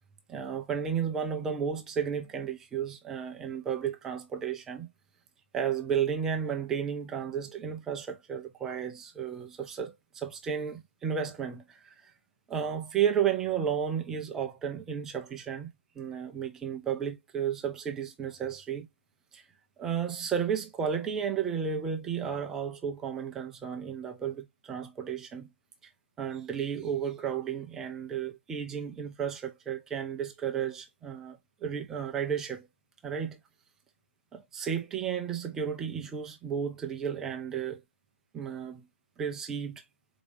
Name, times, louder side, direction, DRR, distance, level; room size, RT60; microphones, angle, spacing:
voice 1, 0.3-4.9 5.5-12.1 12.5-18.9 19.3-19.4 19.8-25.5 26.2-32.7 33.0-33.4 34.3-37.8 38.3-38.9 39.2-39.8, right 8 dB, 5° right, 0.3 m, -33 dB
4.1 x 2.6 x 3.2 m
hypercardioid pair, 155°, 7 cm